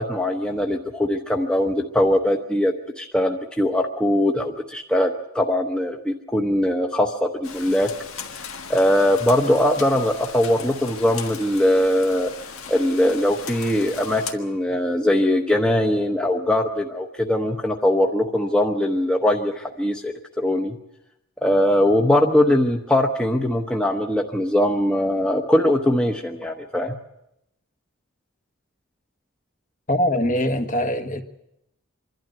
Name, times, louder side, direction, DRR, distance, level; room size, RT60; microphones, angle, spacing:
voice 1, 0.0-7.9 8.3-8.4 8.7-12.3 12.7-20.8 21.4-27.0, left 1 dB, 5° left, 3 dB, 0.9 m, -21 dB
Rain, 7.4-14.3, left 6 dB, 80° left, 1.6 m, -37 dB
voice 2, 29.9-31.2, left 1 dB, 40° left, 6 dB, 1.4 m, -22 dB
25.5 x 12.0 x 9.2 m, 0.84 s
head